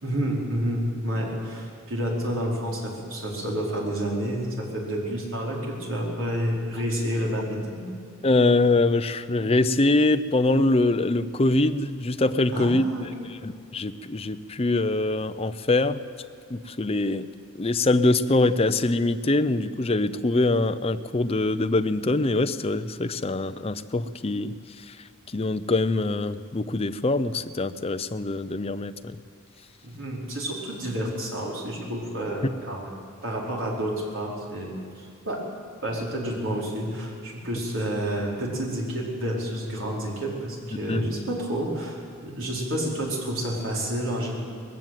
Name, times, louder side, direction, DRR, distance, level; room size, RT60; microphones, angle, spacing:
voice 1, 0.0-7.8 12.5-13.1 29.8-32.9 33.2-35.4 35.8-44.3, right 1 dB, 60° right, -2 dB, 4.8 m, -29 dB
voice 2, 8.2-12.8 13.4-16.0 16.5-17.3 17.6-24.5 24.9-25.0 25.3-29.2 40.9-41.1, left 2 dB, 25° left, 10 dB, 0.6 m, -23 dB
19.5 x 15.5 x 9.2 m, 2.5 s
head